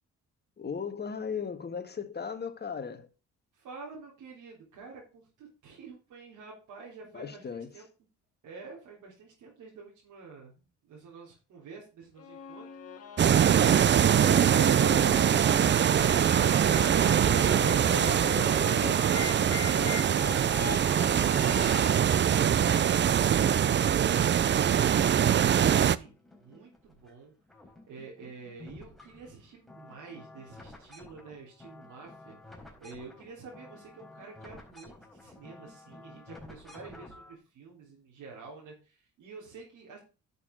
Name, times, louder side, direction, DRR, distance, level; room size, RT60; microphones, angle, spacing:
voice 1, 0.6-3.1 7.1-7.8 16.7-20.3, left 6 dB, 35° left, 1.7 m, -39 dB
voice 2, 3.5-7.8 8.4-16.4 25.4-27.3 27.9-32.4 32.8-40.0, right 4 dB, 85° right, 3.8 m, -48 dB
sound 1, 12.2-23.2, left 9 dB, 55° left, 1.5 m, -40 dB
sound 2, 13.2-26.0, right 9 dB, 40° right, 0.5 m, -23 dB
sound 3, 25.8-27.1 27.4-37.3, left 2 dB, ahead, 4.1 m, -52 dB
10.5 x 6.8 x 3.9 m
cardioid pair, 90°, 30 cm